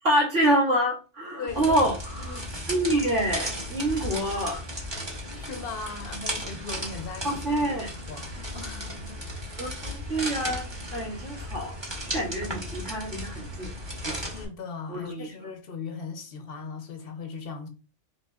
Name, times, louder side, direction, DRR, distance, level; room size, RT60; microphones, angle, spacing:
voice 1, 0.0-4.6 7.2-7.9 9.6-11.8 12.1-13.7 14.0-14.2 14.9-15.3, right 1 dB, 85° right, 2.2 m, -27 dB
voice 2, 1.3-1.7 5.3-7.7 8.1-9.2 14.1-17.7, left 5 dB, 55° left, 0.9 m, -38 dB
sound 1, 1.5-14.4, equal, 25° right, 1.0 m, -35 dB
5.3 x 3.3 x 2.3 m
omnidirectional pair, 1.2 m